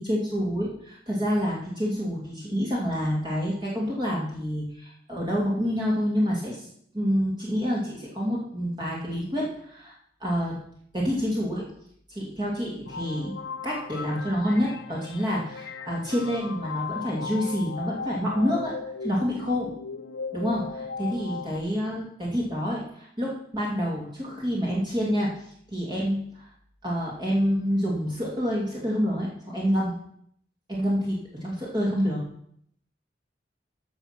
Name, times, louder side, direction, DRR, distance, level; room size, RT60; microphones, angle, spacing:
voice 1, 0.0-6.7 6.9-9.9 10.2-10.6 10.9-11.7 12.1-13.4 13.6-18.7 19.0-19.7 20.3-25.3 25.7-26.5 26.8-29.9 30.7-32.2, equal, 25° right, -4 dB, 2.5 m, -27 dB
sound 1, 12.9-21.6, left 5 dB, 80° left, 0.9 m, -37 dB
14.5 x 6.1 x 5.9 m, 0.67 s
head